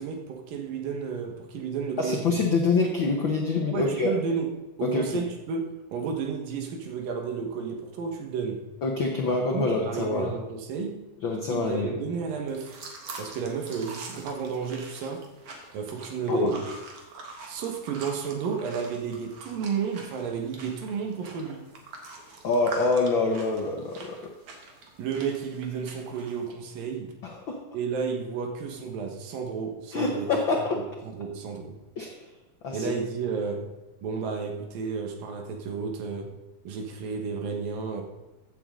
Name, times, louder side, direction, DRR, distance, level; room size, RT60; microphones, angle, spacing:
voice 1, 0.0-2.4 3.7-4.5 4.8-8.7 9.5-11.1 11.5-12.7 13.2-15.3 15.7-16.6 17.5-21.6 25.0-27.2 27.7-30.3 30.7-31.8 32.7-33.7 34.0-36.3 36.6-38.0, right 6 dB, 75° right, 3 dB, 3.1 m, -32 dB
voice 2, 2.0-4.1 4.8-5.2 8.8-10.4 11.2-12.0 16.3-16.6 22.4-24.2 27.2-27.6 29.9-30.8 32.0-32.2 32.6-32.8, left 3 dB, 90° left, 1 dB, 1.0 m, -26 dB
sound 1, 12.5-26.5, right 2 dB, 50° right, 2.0 m, -44 dB
15.0 x 8.9 x 3.8 m, 1.0 s
omnidirectional pair, 4.0 m